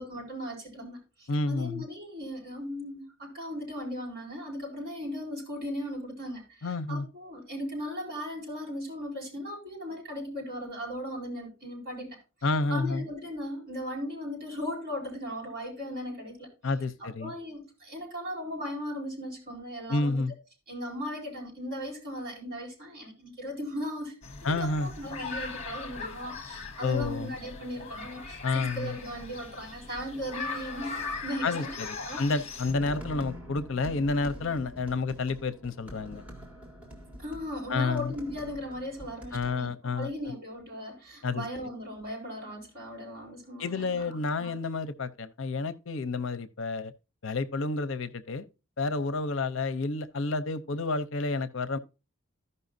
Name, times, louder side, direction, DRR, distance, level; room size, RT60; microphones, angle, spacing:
voice 1, 0.0-12.1 12.7-16.5 17.0-20.2 20.7-28.4 28.7-32.2 37.2-44.5, equal, 45° right, 4.8 m, -37 dB
voice 2, 1.3-1.8 6.6-7.1 12.4-13.0 16.6-17.3 19.9-20.3 24.4-24.9 26.8-27.3 28.4-29.0 31.4-36.2 37.7-38.1 39.3-40.1 41.2-41.5 43.6-46.9 47.2-48.5 48.8-51.8, left 3 dB, 60° left, 0.6 m, -30 dB
sound 1, 24.2-32.7, left 4 dB, 30° left, 1.2 m, -39 dB
sound 2, 32.7-39.6, equal, 5° right, 2.0 m, -45 dB
15.0 x 5.5 x 2.6 m
head